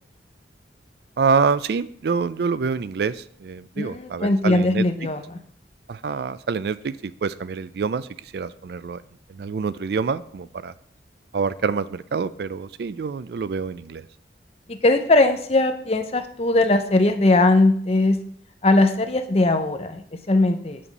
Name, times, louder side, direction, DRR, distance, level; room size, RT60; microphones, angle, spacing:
voice 1, 1.2-4.8 5.9-9.0 9.3-10.7 11.3-14.1, right 5 dB, 60° right, 15 dB, 0.4 m, -26 dB
voice 2, 3.8-5.2 14.7-18.2 18.6-20.8, left 2 dB, 35° left, 7 dB, 0.6 m, -19 dB
8.4 x 7.1 x 4.1 m, 0.64 s
head